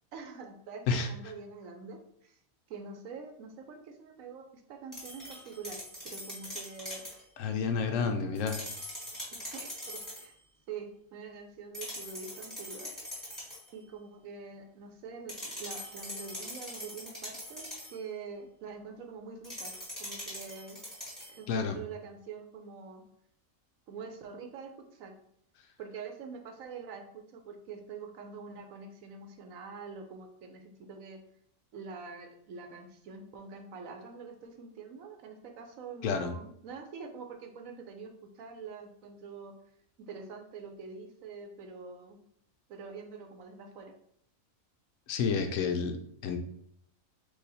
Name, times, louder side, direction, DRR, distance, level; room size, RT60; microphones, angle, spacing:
voice 1, 0.1-2.4 2.7-5.8 6.0-7.0 7.8-8.5 9.3-10.3 10.7-13.0 13.7-20.8 21.3-23.0 23.9-25.2 25.8-31.2 31.7-39.5 40.0-42.2 42.7-43.9, right 5 dB, 75° right, 5 dB, 1.1 m, -45 dB
sound 1, 4.9-7.2 8.3-10.3 11.7-13.7 15.3-18.0 19.4-21.4, left 1 dB, ahead, 1.6 m, -42 dB
voice 2, 7.4-8.6 21.5-21.8 36.0-36.3 45.1-46.4, left 5 dB, 75° left, 6 dB, 0.9 m, -30 dB
4.8 x 2.5 x 4.0 m, 0.69 s
omnidirectional pair, 1.5 m